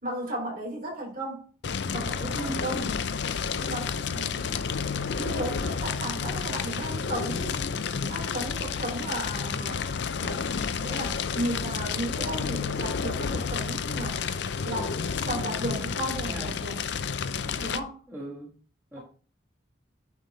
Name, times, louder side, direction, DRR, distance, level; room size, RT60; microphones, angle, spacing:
voice 1, 0.0-1.5 1.9-2.8 3.6-4.6 5.1-7.5 8.1-9.8 10.2-10.5 10.8-14.2 14.6-16.8 17.6-18.0, right 1 dB, 45° right, -3 dB, 3.5 m, -34 dB
Fire, 1.6-17.8, left 6 dB, 60° left, 0.4 m, -30 dB
voice 2, 2.3-3.0 16.3-16.5 18.1-18.5 18.9-19.0, right 1 dB, 10° right, -5 dB, 1.3 m, -37 dB
9.8 x 3.6 x 4.0 m, 0.39 s
head